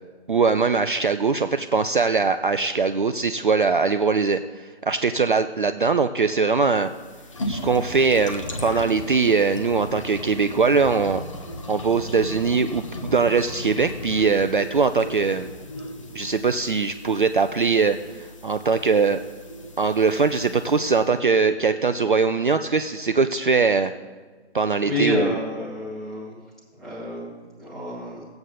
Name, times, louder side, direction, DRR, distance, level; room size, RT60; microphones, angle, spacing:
voice 1, 0.3-6.9 7.5-11.2 11.7-15.5 16.1-19.2 19.8-23.9 24.5-25.3, right 4 dB, 50° right, 9 dB, 0.5 m, -21 dB
sound 1, 6.7-21.0, left 1 dB, 30° left, 0.8 m, -36 dB
voice 2, 24.8-26.4 26.7-28.3, left 1 dB, ahead, -6 dB, 1.5 m, -28 dB
15.5 x 7.9 x 4.0 m, 1.4 s
figure-of-eight pair, 150°, 34 cm